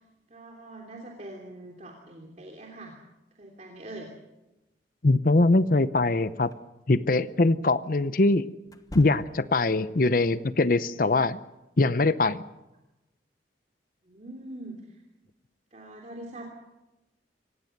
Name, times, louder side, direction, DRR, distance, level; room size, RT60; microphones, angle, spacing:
voice 1, 0.3-2.9 3.4-4.1 14.1-14.8 15.7-16.5, right 1 dB, 40° right, 0 dB, 3.1 m, -43 dB
voice 2, 5.0-6.5 6.9-8.4 8.9-11.4 11.8-12.4, left 2 dB, 50° left, 14 dB, 0.7 m, -22 dB
sound 1, 6.4-6.6 8.6-9.7, left 1 dB, 20° left, 1.1 m, -44 dB
26.0 x 18.0 x 6.7 m, 0.97 s
head